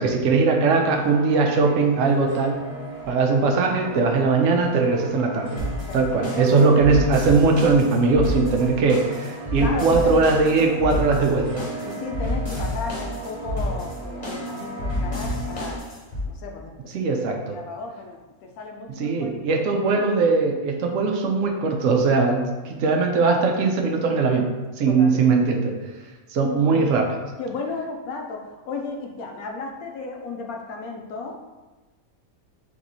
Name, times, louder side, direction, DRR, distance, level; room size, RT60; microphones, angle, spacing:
voice 1, 0.0-2.6 3.1-5.6 5.9-11.6 16.9-17.6 19.0-24.5 24.8-25.7 26.3-27.2, right 4 dB, 65° right, 3 dB, 0.9 m, -20 dB
sound 1, 0.7-15.8, right 3 dB, 35° right, 1.2 m, -37 dB
sound 2, 5.6-16.3, left 1 dB, 30° left, 1.0 m, -30 dB
voice 2, 5.9-6.5 9.6-10.3 10.6-11.0 11.8-15.8 16.3-20.2 24.9-25.6 26.4-26.9 27.4-31.4, left 3 dB, 75° left, 2 dB, 1.1 m, -35 dB
3.6 x 3.0 x 3.9 m, 1.2 s
omnidirectional pair, 1.5 m